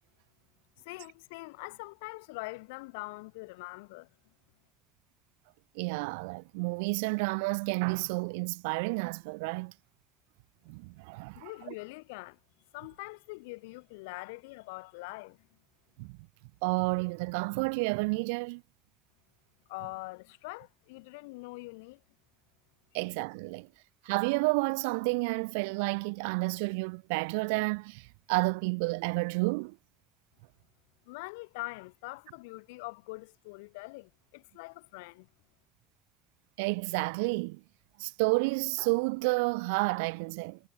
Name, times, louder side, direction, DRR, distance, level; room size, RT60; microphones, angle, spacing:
voice 1, 0.8-4.1 11.3-12.4 12.7-15.5 19.7-22.0 31.1-35.3, left 26 dB, 75° left, 5.5 m, -43 dB
voice 2, 5.7-9.7 10.7-11.5 16.0-16.2 16.6-18.6 22.9-23.7 24.0-29.8 36.6-37.6 38.0-40.6, right 29 dB, 75° right, 1.2 m, -30 dB
hypercardioid pair, 60°, 0 cm